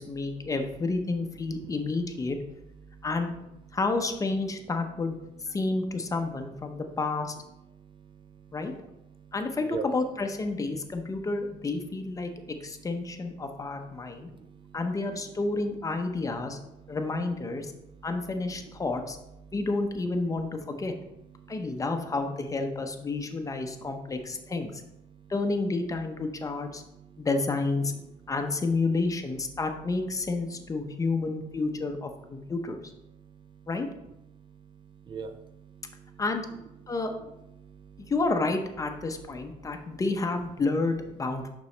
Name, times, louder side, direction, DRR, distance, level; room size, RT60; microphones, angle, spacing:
voice 1, 0.0-2.4 3.0-3.3 3.7-5.2 5.4-7.3 8.5-8.7 9.3-12.3 12.6-14.3 14.7-16.6 16.9-17.7 18.0-19.2 19.5-20.9 21.5-24.7 25.3-26.8 27.2-27.9 28.3-32.8 33.7-33.9 36.2-36.5 36.9-37.1 38.0-41.4, left 3 dB, 20° left, 5 dB, 0.7 m, -30 dB
voice 2, 7.7-9.3 9.7-9.9 12.2-12.5 13.9-14.8 16.5-17.0 17.7-18.1 19.4-19.5 21.4-21.8 25.1-25.3 26.9-27.3 28.1-28.3 32.4-32.5 33.1-33.7 34.3-36.2 36.8-37.0 37.6-38.1 39.6-40.0, right 5 dB, 30° right, 7 dB, 0.5 m, -45 dB
6.7 x 6.1 x 3.3 m, 0.87 s
cardioid pair, 125°, 16 cm